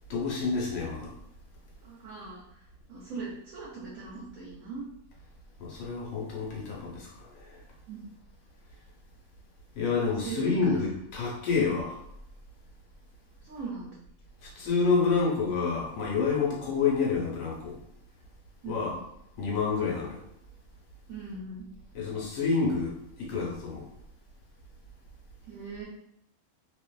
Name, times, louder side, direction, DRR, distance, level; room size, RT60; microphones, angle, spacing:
voice 1, 0.1-1.1 5.6-7.6 9.7-12.0 14.4-17.8 18.6-18.9 19.4-20.2 21.9-23.9, left 4 dB, 70° left, -3 dB, 1.1 m, -28 dB
voice 2, 1.8-2.4 2.9-4.9 7.9-8.1 10.1-10.6 13.4-13.9 18.6-19.0 21.1-21.6 25.4-25.8, right 4 dB, 70° right, -5 dB, 1.0 m, -40 dB
2.6 x 2.4 x 2.2 m, 0.75 s
omnidirectional pair, 1.5 m